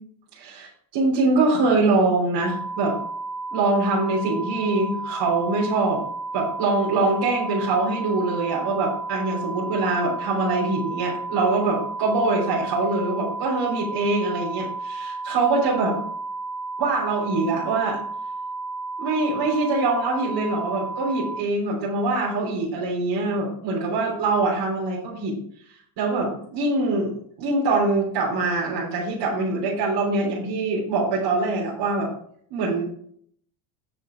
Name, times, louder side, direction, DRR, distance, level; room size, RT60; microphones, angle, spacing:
voice 1, 0.3-3.0 3.5-6.0 6.3-16.0 16.8-18.0 19.0-25.4 26.0-27.1 27.4-32.1 32.5-32.8, right 3 dB, 60° right, -5 dB, 3.6 m, -23 dB
sound 1, 2.4-21.4, right 3 dB, ahead, 0.5 m, -33 dB
8.6 x 7.2 x 4.5 m, 0.64 s
hypercardioid pair, 75°, 49 cm